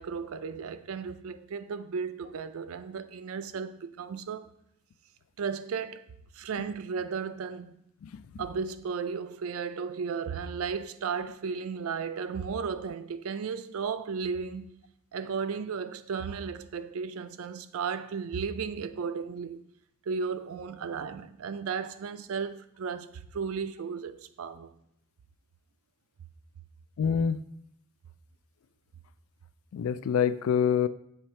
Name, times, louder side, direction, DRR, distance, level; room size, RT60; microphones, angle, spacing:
voice 1, 0.0-4.5 5.4-6.1 6.3-7.8 8.4-14.7 15.1-19.6 20.1-24.7, right 5 dB, 85° right, 0.4 m, -34 dB
voice 2, 27.0-27.4 29.7-30.9, left 7 dB, 85° left, 0.3 m, -26 dB
7.0 x 3.2 x 4.3 m
head